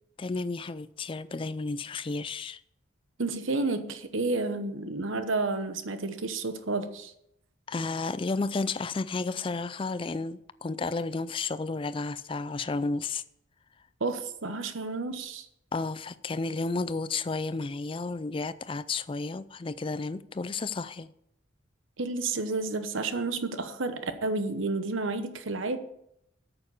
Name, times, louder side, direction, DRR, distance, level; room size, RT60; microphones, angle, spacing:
voice 1, 0.2-2.6 7.7-13.2 15.7-21.1, left 3 dB, 25° left, 0.3 m, -32 dB
voice 2, 3.2-7.1 14.0-15.5 22.0-25.8, right 3 dB, 75° right, 1.0 m, -31 dB
8.8 x 7.0 x 7.1 m
head